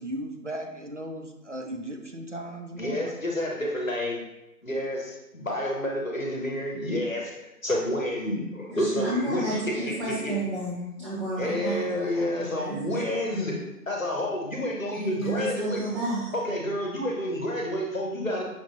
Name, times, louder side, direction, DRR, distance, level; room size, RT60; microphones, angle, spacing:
voice 1, 0.0-3.2, right 1 dB, 50° right, 3 dB, 0.5 m, -37 dB
voice 2, 2.8-4.2 4.6-10.3 11.4-13.6 13.9-15.8 16.3-18.4, left 1 dB, 55° left, -1 dB, 0.9 m, -29 dB
voice 3, 8.7-13.6 14.9-16.3, right 1 dB, 30° right, -11 dB, 1.1 m, -32 dB
5.9 x 2.5 x 2.9 m, 0.91 s
figure-of-eight pair, 165°, 49 cm